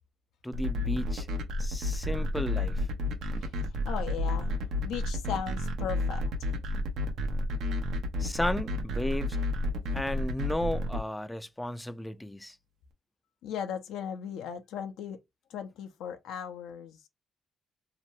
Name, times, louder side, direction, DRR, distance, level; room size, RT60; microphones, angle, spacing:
voice 1, 0.4-1.3 1.6-2.9 8.2-9.4 9.9-12.6, left 1 dB, 10° left, 0.3 m, -34 dB
sound 1, 0.5-11.0, left 1 dB, 80° right, 0.8 m, -31 dB
voice 2, 3.3-4.5 4.8-6.5 13.4-15.2 15.5-17.1, left 8 dB, 85° left, 0.5 m, -37 dB
2.7 x 2.2 x 2.9 m
cardioid pair, 90°, 0 cm